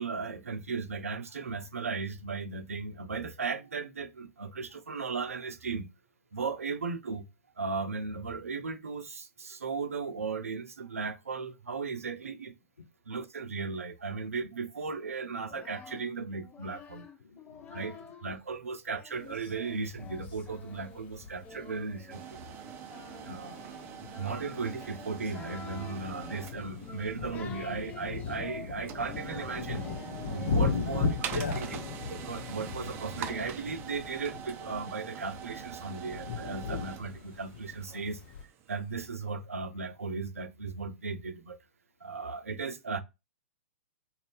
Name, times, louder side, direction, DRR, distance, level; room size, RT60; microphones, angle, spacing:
voice 1, 0.0-5.9 6.3-7.3 7.6-12.5 13.1-17.1 17.7-18.0 18.2-22.2 23.2-23.8 24.2-29.9 30.3-31.3 32.1-38.2 38.7-41.6 42.0-43.0, right 4 dB, 80° right, 0.5 m, -36 dB
Singing, 15.3-18.4 18.9-33.4, left 6 dB, 20° left, 0.5 m, -49 dB
voice 2, 16.9-18.1 30.5-31.7, left 2 dB, 85° left, 0.5 m, -41 dB
sound 1, 19.1-38.4, left 5 dB, 50° left, 0.9 m, -38 dB
sound 2, 22.1-39.0, right 8 dB, 30° right, 0.5 m, -44 dB
2.6 x 2.3 x 3.3 m
figure-of-eight pair, 110°, 8 cm